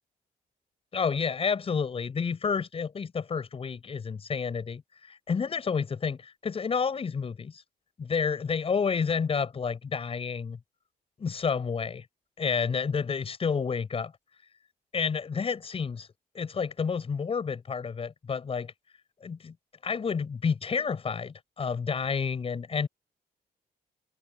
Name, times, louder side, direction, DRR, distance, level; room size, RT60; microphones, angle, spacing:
voice 1, 0.9-4.8 5.1-7.6 8.0-10.6 11.2-12.0 12.4-14.1 14.9-16.1 16.3-18.7 19.2-19.5 19.8-22.9, left 6 dB, 35° left, 7.1 m, -30 dB
wide cardioid pair, 155°, 16 cm